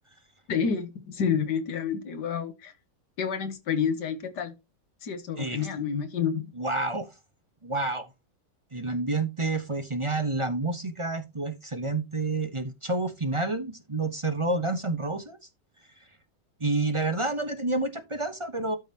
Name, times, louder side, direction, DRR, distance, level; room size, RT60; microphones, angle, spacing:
voice 1, 0.5-2.7 3.2-4.5 5.0-6.5, left 7 dB, 70° left, 1.8 m, -29 dB
voice 2, 5.4-5.7 6.6-7.1 7.6-8.1 8.7-15.4 16.6-18.8, right 2 dB, 25° right, 0.7 m, -29 dB
12.5 x 5.3 x 2.9 m
omnidirectional pair, 1.9 m